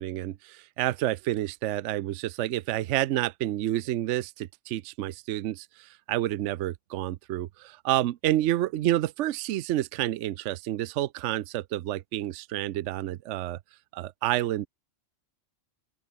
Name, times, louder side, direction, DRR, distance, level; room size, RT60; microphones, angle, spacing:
voice 1, 0.0-13.6 13.9-14.7, right 14 dB, 75° right, 0.9 m, -29 dB
open air
omnidirectional pair, 1.3 m